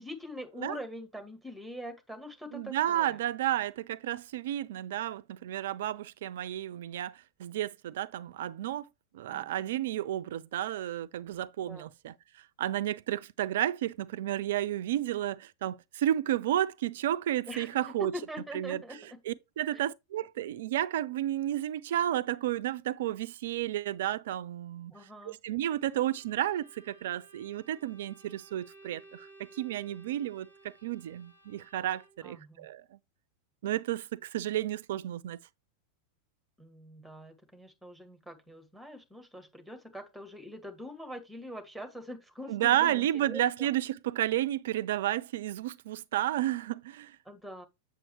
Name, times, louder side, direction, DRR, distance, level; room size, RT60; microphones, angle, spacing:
voice 1, 0.0-3.2 9.3-9.5 11.7-11.9 17.5-19.2 19.7-19.8 24.9-25.4 32.2-32.7 36.6-43.7 47.3-47.7, equal, ahead, 1.9 m, -44 dB
voice 2, 2.5-8.9 9.1-12.1 12.6-18.1 18.5-18.8 19.3-24.9 25.2-32.8 33.6-35.4 42.5-47.2, right 12 dB, 55° right, 0.5 m, -32 dB
Bowed string instrument, 25.8-32.3, right 3 dB, 80° left, 1.9 m, -57 dB
7.6 x 6.7 x 3.1 m
figure-of-eight pair, 90°, 0 cm